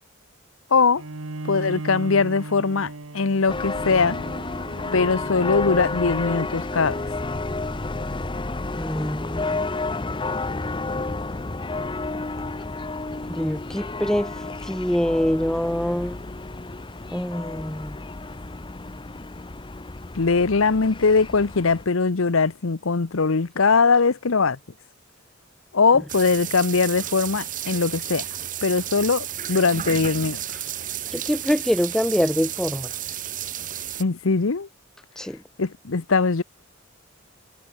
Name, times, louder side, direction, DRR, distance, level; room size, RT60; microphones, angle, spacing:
voice 1, 0.7-1.0 1.4-4.2 4.9-7.0 20.1-24.6 25.7-28.3 28.6-30.6 34.0-34.7 35.6-36.4, left 4 dB, 75° left, 0.9 m, -21 dB
Bowed string instrument, 0.9-6.6, right 2 dB, 80° right, 1.3 m, -37 dB
sound 1, 3.5-21.8, left 3 dB, 25° left, 0.8 m, -31 dB
voice 2, 8.8-9.6 13.3-14.3 14.6-16.2 17.1-18.0 31.1-32.9 35.2-35.4, equal, 5° left, 0.4 m, -24 dB
sound 2, 26.1-34.0, right 10 dB, 40° right, 1.7 m, -32 dB
head